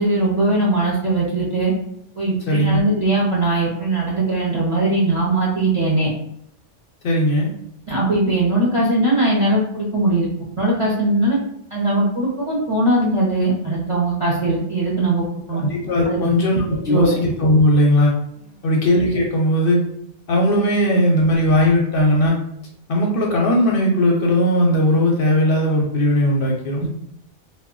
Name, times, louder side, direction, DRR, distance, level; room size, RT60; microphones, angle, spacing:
voice 1, 0.0-1.7 2.2-6.1 7.9-10.3 10.6-11.4 11.7-15.6 16.1-16.3 16.9-17.2 26.8-26.9, right 2 dB, 45° right, -6 dB, 0.4 m, -20 dB
voice 2, 2.5-2.8 7.0-7.5 15.5-18.1 18.6-19.8 20.3-22.4 22.9-26.8, left 1 dB, 60° left, -1 dB, 0.6 m, -18 dB
2.2 x 2.1 x 3.6 m, 0.75 s
omnidirectional pair, 1.2 m